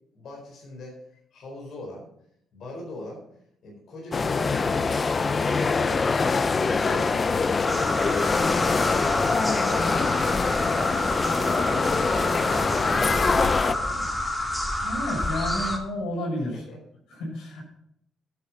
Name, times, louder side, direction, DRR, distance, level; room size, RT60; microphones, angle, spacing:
voice 1, 0.1-2.1 2.5-3.2 3.6-7.2 8.6-10.1 10.5-14.2 16.7-16.8 17.5-17.6, left 1 dB, 65° left, -2 dB, 4.3 m, -40 dB
sound 1, 4.1-13.7, left 4 dB, 35° left, 0.6 m, -24 dB
sound 2, 7.6-15.8, left 1 dB, 15° left, 2.3 m, -28 dB
voice 2, 14.8-16.6 17.1-17.6, left 1 dB, 90° left, -1 dB, 5.8 m, -31 dB
11.0 x 8.5 x 6.1 m, 0.73 s
cardioid pair, 90°, 0 cm